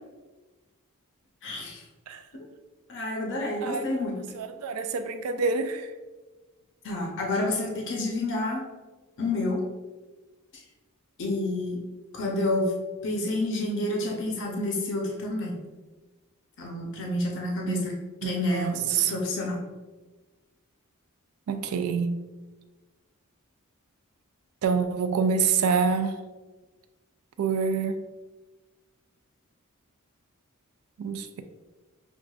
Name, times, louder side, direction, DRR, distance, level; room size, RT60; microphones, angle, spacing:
voice 1, 1.4-1.8 2.3-2.5 2.9-4.2 6.8-8.6 9.2-9.6 11.2-11.8 12.1-12.7 13.0-15.6 16.6-18.0 18.2-19.6, left 2 dB, 60° left, -1 dB, 0.7 m, -29 dB
voice 2, 3.6-4.0 4.3-5.9 17.6-17.8 18.2-19.1 21.5-22.2 24.6-26.2 27.4-28.0 31.0-31.4, right 5 dB, 70° right, 9 dB, 0.4 m, -27 dB
6.2 x 2.4 x 2.3 m, 1.2 s
head